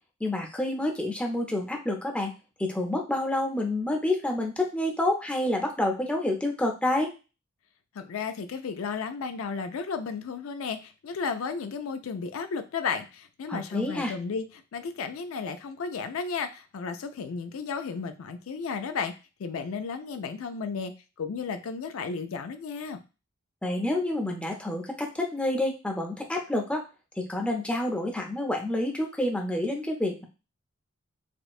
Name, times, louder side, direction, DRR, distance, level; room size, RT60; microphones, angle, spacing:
voice 1, 0.2-2.3 2.6-7.1 13.5-14.1 23.6-26.8 27.2-30.2, left 1 dB, 5° left, 0 dB, 0.6 m, -28 dB
voice 2, 7.9-14.5 14.7-19.1 19.4-20.9 21.2-23.0, left 5 dB, 80° left, 8 dB, 0.4 m, -33 dB
4.3 x 2.1 x 2.4 m, 0.30 s
head